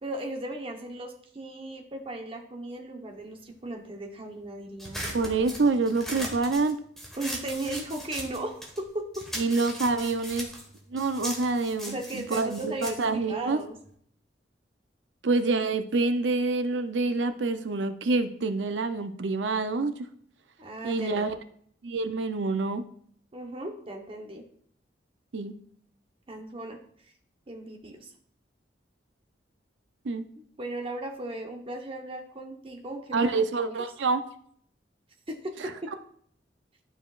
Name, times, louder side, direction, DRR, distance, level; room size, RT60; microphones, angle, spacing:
voice 1, 0.0-5.2 7.2-8.7 8.9-9.0 11.9-13.8 20.6-21.3 23.3-24.4 26.3-26.8 27.5-28.1 30.6-33.3 33.6-33.7 35.3-35.7, right 1 dB, 30° right, 2 dB, 1.0 m, -36 dB
sound 1, 4.8-8.8 9.1-13.9, equal, ahead, 1.4 m, -39 dB
voice 2, 5.1-6.8 9.4-10.5 10.9-13.6 15.2-19.9 20.8-21.3 21.8-22.8 25.3-25.5 30.0-30.3 33.1-34.2, right 3 dB, 80° right, 9 dB, 0.6 m, -27 dB
12.0 x 4.9 x 2.5 m, 0.63 s
head